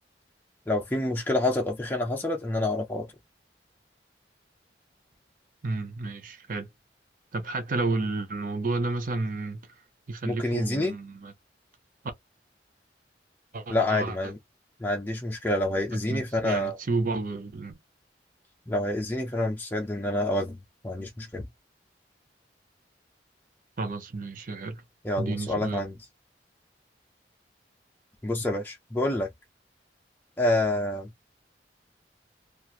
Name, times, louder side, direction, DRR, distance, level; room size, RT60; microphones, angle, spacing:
voice 1, 0.7-3.1 10.2-10.9 13.7-14.4 14.8-16.8 18.7-20.6 20.8-21.5 25.0-26.0 28.2-29.3 30.4-31.1, left 1 dB, 10° left, 0.4 m, -27 dB
voice 2, 5.6-6.7 7.3-9.6 10.1-11.3 13.5-14.2 15.9-17.8 23.8-24.8 25.2-25.8, right 3 dB, 50° right, 0.6 m, -31 dB
2.9 x 2.3 x 2.4 m
head